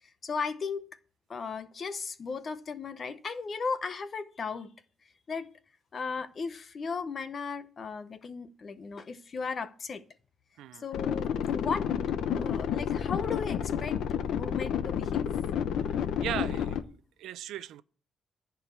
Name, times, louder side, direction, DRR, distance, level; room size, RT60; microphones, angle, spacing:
voice 1, 0.2-0.8 1.3-4.7 5.3-5.5 5.9-10.0 10.7-11.9 12.3-14.0 14.4-15.3, left 5 dB, 30° left, 0.7 m, -36 dB
sound 1, 10.9-16.8, left 8 dB, 70° left, 0.8 m, -30 dB
voice 2, 16.2-16.9 17.2-17.8, right 12 dB, 85° right, 0.5 m, -37 dB
14.0 x 4.7 x 8.2 m
cardioid pair, 175°, 0 cm